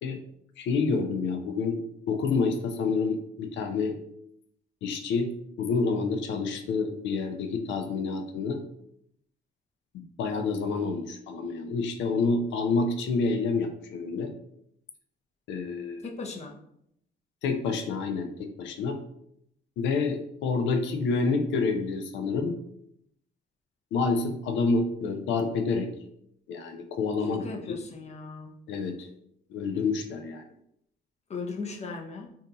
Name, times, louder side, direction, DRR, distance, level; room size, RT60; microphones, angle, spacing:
voice 1, 0.6-1.8 2.1-4.0 4.8-5.3 5.6-8.6 10.2-14.3 15.5-16.1 17.4-19.0 19.8-22.5 23.9-25.9 26.5-27.8 28.7-29.1 29.5-30.4, left 4 dB, 80° left, 7 dB, 0.5 m, -28 dB
voice 2, 16.0-16.6 27.4-28.5 31.3-32.3, left 4 dB, 35° left, 2 dB, 0.6 m, -37 dB
2.7 x 2.3 x 3.8 m, 0.73 s
cardioid pair, 95°, 19 cm